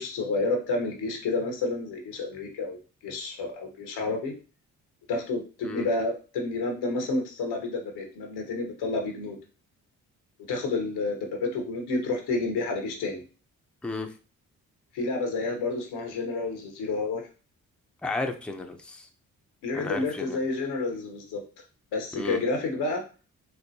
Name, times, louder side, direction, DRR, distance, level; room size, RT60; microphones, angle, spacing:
voice 1, 0.0-2.8 3.0-4.3 5.1-9.4 10.5-13.2 14.9-17.2 19.6-21.4 21.9-23.0, left 3 dB, 80° left, 3 dB, 0.9 m, -30 dB
voice 2, 13.8-14.1 18.0-19.1 19.7-20.4 22.2-22.4, left 2 dB, 5° left, 4 dB, 0.6 m, -33 dB
4.4 x 2.2 x 2.7 m, 0.35 s
supercardioid pair, 50°, 38 cm